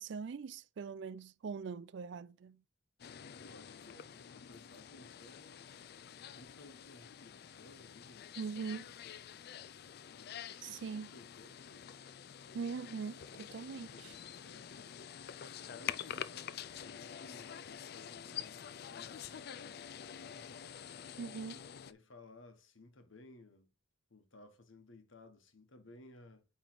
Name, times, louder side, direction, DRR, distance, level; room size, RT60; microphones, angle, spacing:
voice 1, 0.0-2.6 8.4-8.9 10.6-11.1 12.5-14.1 21.2-21.6, right 5 dB, 60° right, 0.4 m, -42 dB
sound 1, 3.0-21.9, left 9 dB, 50° left, 0.4 m, -47 dB
voice 2, 3.3-5.7 6.3-8.4 10.1-12.0 13.3-20.7 21.8-23.7 24.1-26.5, left 2 dB, 75° left, 1.3 m, -59 dB
8.8 x 3.3 x 4.5 m
head